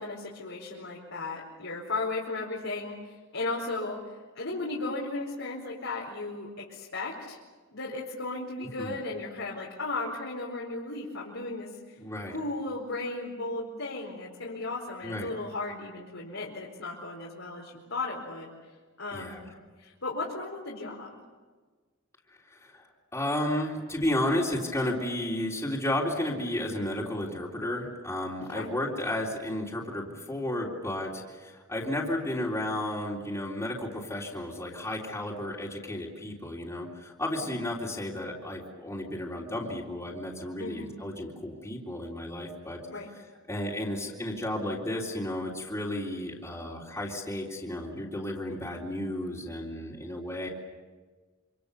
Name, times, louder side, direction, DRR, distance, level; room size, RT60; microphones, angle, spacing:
voice 1, 0.0-3.0 3.3-4.1 4.3-7.4 7.7-11.9 12.3-18.5 19.0-19.4 19.8-21.2 28.4-28.7 37.4-37.5 40.6-40.9 42.9-43.1, left 2 dB, 80° left, -4 dB, 4.6 m, -35 dB
voice 2, 8.6-8.9 12.0-12.4 15.0-15.3 19.1-19.4 22.3-22.9 23.1-42.8 43.5-50.5, left 1 dB, 15° left, -3 dB, 3.5 m, -33 dB
27.0 x 26.5 x 7.0 m, 1.4 s
head